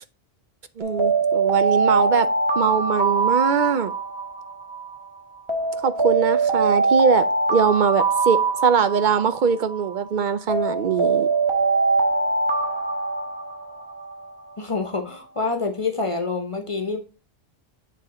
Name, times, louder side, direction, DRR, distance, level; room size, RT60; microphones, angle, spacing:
Alarm, 0.8-5.0 5.5-10.0 10.5-14.3, right 3 dB, 30° right, 1.2 m, -23 dB
voice 1, 0.8-2.3 2.6-3.9 5.8-11.3, right 6 dB, 60° right, 0.6 m, -22 dB
voice 2, 14.6-17.0, left 4 dB, 35° left, 0.9 m, -27 dB
7.5 x 3.5 x 3.8 m
omnidirectional pair, 1.1 m